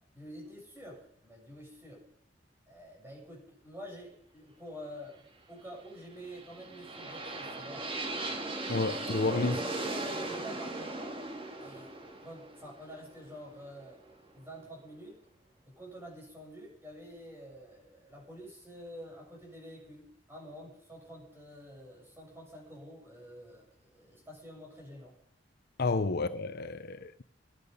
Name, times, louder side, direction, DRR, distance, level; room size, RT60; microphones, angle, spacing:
voice 1, 0.1-2.0 2.7-7.9 9.3-11.2 11.6-11.9 12.2-15.2 15.7-25.2, equal, 15° right, 7.7 m, -48 dB
sound 1, 6.2-14.1, right 2 dB, 30° right, 2.3 m, -38 dB
voice 2, 8.7-9.5 25.8-27.2, left 3 dB, 55° left, 0.7 m, -30 dB
23.5 x 10.5 x 5.6 m
head